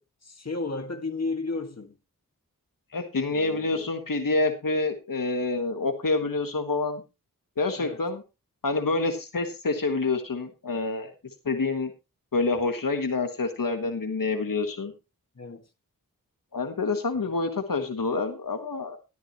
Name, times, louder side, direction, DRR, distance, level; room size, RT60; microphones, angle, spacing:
voice 1, 0.0-2.0 3.3-3.9 7.8-8.0 15.4-15.6 17.2-17.3, left 3 dB, 50° left, 1.9 m, -34 dB
voice 2, 2.9-7.0 7.6-8.2 8.6-11.1 11.4-11.9 12.3-14.9 16.5-19.0, left 3 dB, 75° left, 1.7 m, -27 dB
12.5 x 12.5 x 3.0 m
wide cardioid pair, 65°, 33 cm